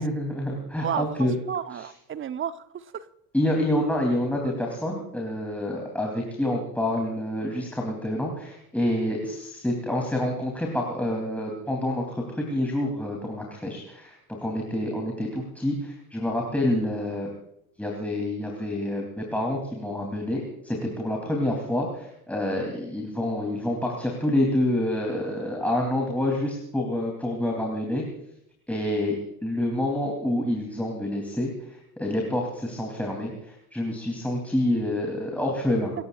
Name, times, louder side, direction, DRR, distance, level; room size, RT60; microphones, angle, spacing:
voice 1, 0.0-1.3 1.7-1.9 3.3-14.1 14.4-17.3 17.8-28.0 28.7-29.2 29.4-35.9, left 1 dB, 5° left, 0 dB, 3.4 m, -27 dB
voice 2, 0.8-3.1, right 8 dB, 25° right, 13 dB, 1.0 m, -32 dB
27.0 x 16.5 x 2.6 m, 0.78 s
figure-of-eight pair, 70°, 46 cm